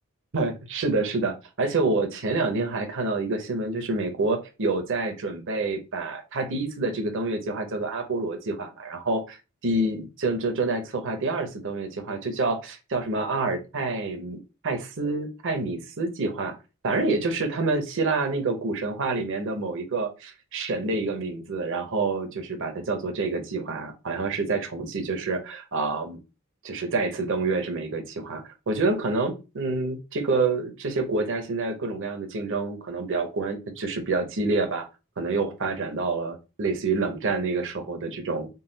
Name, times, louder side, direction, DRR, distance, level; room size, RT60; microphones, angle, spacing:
voice 1, 0.3-14.4 14.6-16.6 16.8-26.2 26.6-34.9 35.2-38.5, right 3 dB, 60° right, 6 dB, 0.8 m, -27 dB
3.8 x 2.3 x 3.8 m, 0.29 s
head